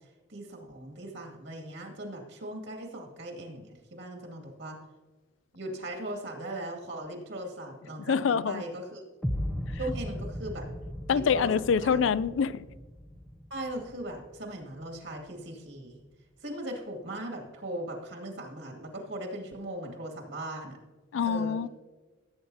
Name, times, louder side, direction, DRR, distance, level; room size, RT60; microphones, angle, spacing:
voice 1, 0.3-4.8 5.5-9.0 9.8-10.7 11.1-11.5 11.8-12.0 13.5-16.0 16.4-20.8 21.2-21.6, right 1 dB, 70° right, 2.2 m, -39 dB
voice 2, 8.1-8.6 11.1-12.6 21.1-21.7, left 6 dB, 75° left, 0.4 m, -25 dB
sound 1, 9.2-15.2, equal, 5° left, 0.7 m, -37 dB
16.5 x 8.6 x 2.7 m
head